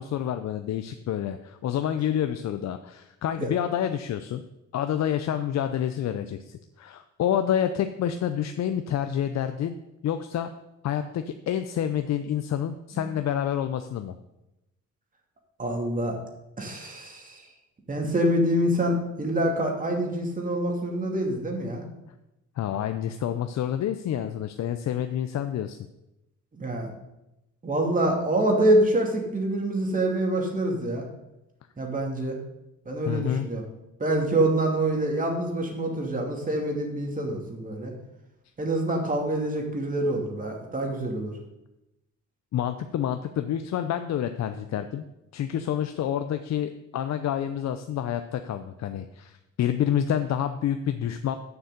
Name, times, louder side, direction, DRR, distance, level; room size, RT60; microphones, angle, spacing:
voice 1, 0.0-4.4 4.7-9.8 10.0-10.5 10.8-14.2 22.6-25.8 33.1-33.5 42.5-45.0 45.3-51.4, left 10 dB, 60° left, 8 dB, 0.6 m, -28 dB
voice 2, 15.6-16.2 16.6-17.5 17.9-21.8 26.5-26.9 27.6-31.0 31.8-32.4 32.9-33.6 34.0-37.9 38.6-41.4, right 1 dB, 25° right, 1 dB, 2.6 m, -26 dB
7.1 x 6.5 x 7.9 m, 0.91 s
cardioid pair, 90°, 30 cm